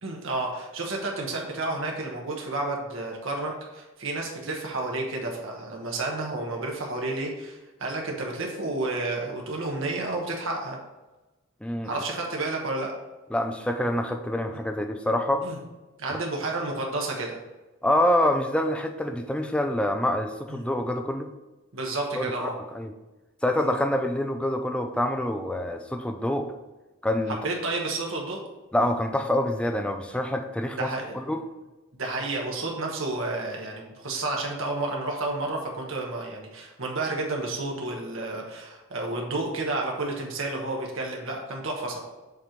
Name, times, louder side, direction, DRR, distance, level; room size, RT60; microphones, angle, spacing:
voice 1, 0.0-10.8 11.8-12.9 15.4-15.6 16.0-17.4 20.5-20.6 21.7-22.6 23.6-23.7 27.4-28.4 30.7-31.3 32.0-42.0, right 2 dB, 65° right, 0 dB, 1.2 m, -31 dB
voice 2, 11.6-11.9 13.3-15.5 16.1-16.2 17.8-21.3 22.2-22.9 23.4-26.5 27.0-27.4 28.7-31.4, left 1 dB, 5° left, 5 dB, 0.4 m, -26 dB
7.3 x 3.0 x 5.2 m, 1.1 s
head